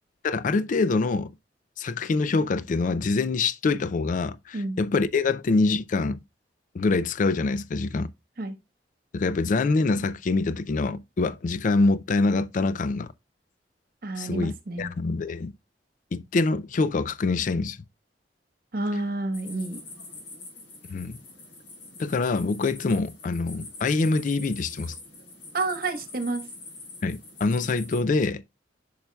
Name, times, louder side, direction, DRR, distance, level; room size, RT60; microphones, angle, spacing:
voice 1, 0.2-1.3 1.8-6.2 6.7-8.1 9.1-13.1 14.2-15.5 16.1-17.8 20.9-21.2 22.0-25.0 27.0-28.4, left 3 dB, 45° left, 0.4 m, -25 dB
voice 2, 14.0-14.9 18.7-19.8 25.5-26.4, right 2 dB, 55° right, 1.2 m, -29 dB
sound 1, 19.3-28.0, left 3 dB, 85° left, 3.3 m, -44 dB
8.9 x 5.5 x 2.3 m
head